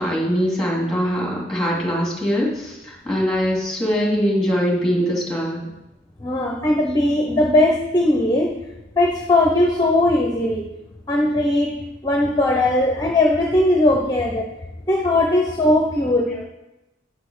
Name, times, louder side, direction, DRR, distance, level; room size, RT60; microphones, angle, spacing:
voice 1, 0.0-5.7 16.3-16.4, equal, ahead, -3 dB, 2.4 m, -22 dB
voice 2, 6.2-8.5 9.0-10.6 11.1-11.7 12.0-14.5 14.9-16.3, left 1 dB, 20° left, 0 dB, 0.8 m, -18 dB
8.4 x 6.0 x 6.2 m, 0.96 s
head